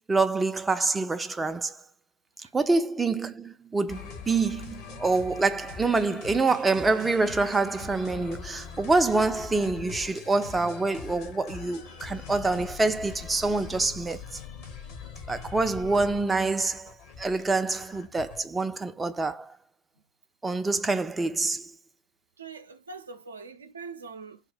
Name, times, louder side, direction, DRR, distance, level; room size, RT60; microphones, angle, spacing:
voice 1, 0.1-1.8 2.5-14.2 15.3-19.5 20.4-21.7, right 3 dB, 15° right, 0.4 m, -26 dB
sound 1, 3.9-18.4, left 6 dB, 55° left, 0.8 m, -43 dB
voice 2, 22.4-24.4, right 4 dB, 85° right, 0.4 m, -43 dB
2.8 x 2.1 x 4.1 m
figure-of-eight pair, 85°, 0 cm